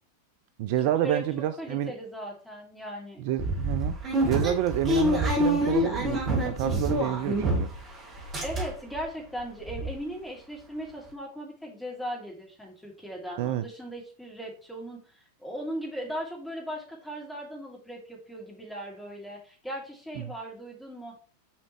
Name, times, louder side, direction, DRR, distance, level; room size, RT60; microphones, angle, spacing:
voice 1, 0.6-1.9 3.2-4.0 4.2-7.7 13.4-13.7 20.2-20.3, right 12 dB, 50° right, 0.4 m, -29 dB
voice 2, 1.6-3.2 8.4-21.2, equal, 5° left, 2.7 m, -38 dB
sound 1, 3.4-7.9 8.1-9.0 9.4-9.5 9.7-9.9, equal, 25° right, 2.3 m, -26 dB
7.0 x 5.1 x 3.1 m
figure-of-eight pair, 90°, 0 cm